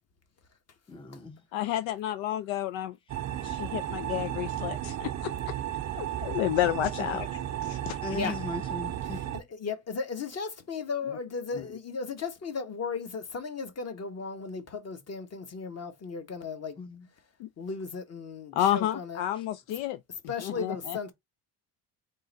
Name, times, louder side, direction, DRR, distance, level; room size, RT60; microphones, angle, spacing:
voice 1, 0.9-1.4 3.4-3.6 7.0-7.2 8.0-9.3 11.6-11.7 16.8-17.1 19.4-19.5, left 3 dB, 10° left, 0.6 m, -38 dB
voice 2, 1.5-3.0 3.4-5.3 6.0-7.3 7.6-8.0 8.2-8.3 11.5-11.6 17.4-17.5 18.5-20.0 20.4-21.0, left 12 dB, 65° left, 0.5 m, -30 dB
sound 1, 3.1-9.4, right 11 dB, 35° right, 0.5 m, -34 dB
voice 3, 9.3-16.8 17.6-19.2 20.3-21.1, left 4 dB, 30° left, 1.1 m, -35 dB
3.8 x 2.6 x 4.0 m
supercardioid pair, 95°, 49 cm